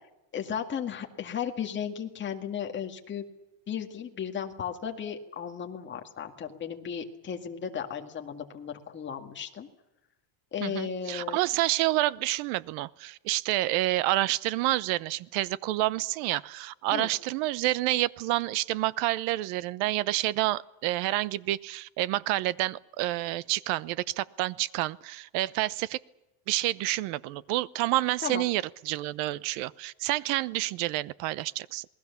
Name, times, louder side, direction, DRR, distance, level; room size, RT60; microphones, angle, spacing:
voice 1, 0.3-3.2 3.7-9.7 10.5-11.4 16.9-17.1 28.2-28.5, left 8 dB, 25° left, 3 dB, 2.0 m, -35 dB
voice 2, 10.6-26.0 26.5-31.9, right 17 dB, 90° right, 20 dB, 1.0 m, -28 dB
27.5 x 20.5 x 7.1 m, 0.93 s
cardioid pair, 180°, 48 cm